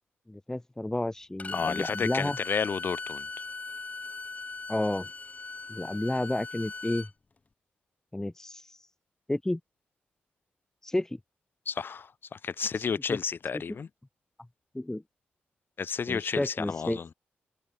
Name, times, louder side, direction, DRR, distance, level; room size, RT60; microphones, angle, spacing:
voice 1, 0.3-2.4 4.7-5.1 5.7-7.1 8.1-8.8 9.3-9.6 10.8-11.2 13.1-13.2 14.7-15.0 16.1-17.1, left 1 dB, 10° left, 0.9 m, -31 dB
Bowed string instrument, 1.4-7.1, left 3 dB, 35° left, 1.5 m, -39 dB
voice 2, 1.5-3.3 11.7-13.9 15.8-17.1, left 6 dB, 55° left, 1.8 m, -31 dB
cardioid pair, 55°, 4 cm